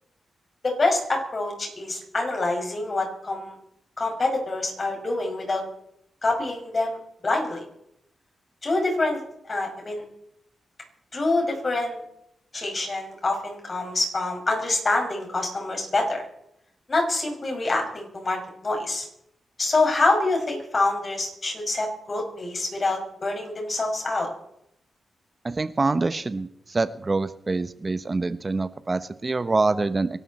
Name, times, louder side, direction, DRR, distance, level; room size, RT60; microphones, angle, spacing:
voice 1, 0.6-3.6 4.0-5.6 6.2-7.0 7.2-7.6 8.6-9.2 9.5-10.0 11.1-12.0 12.5-16.2 16.9-19.1 19.6-24.3, left 2 dB, 45° left, 2 dB, 5.9 m, -26 dB
voice 2, 25.4-26.5 26.7-30.1, right 3 dB, 35° right, 13 dB, 0.9 m, -25 dB
25.0 x 12.5 x 4.3 m, 0.79 s
cardioid pair, 60°, 0 cm